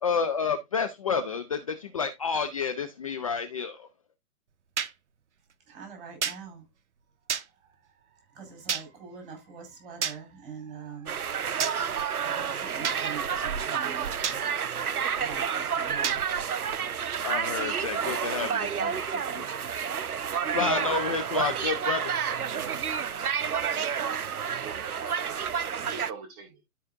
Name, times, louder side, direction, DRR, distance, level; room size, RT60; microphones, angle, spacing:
voice 1, 0.0-3.9 17.2-19.5 20.5-22.1, left 5 dB, 25° left, 0.5 m, -30 dB
sound 1, 4.8-4.9 6.2-6.4 7.3-7.5 8.7-8.9 10.0-10.2 11.6-11.8 12.8-13.0 14.2-14.4 16.0-16.2, right 7 dB, 55° right, 0.9 m, -29 dB
voice 2, 5.7-6.7 7.4-17.3, right 6 dB, 35° right, 5.3 m, -45 dB
sound 2, 11.1-26.1, right 7 dB, 80° right, 0.7 m, -30 dB
voice 3, 24.2-25.4 25.8-26.5, right 5 dB, 15° right, 0.7 m, -43 dB
13.0 x 4.9 x 2.6 m
figure-of-eight pair, 125°, 44 cm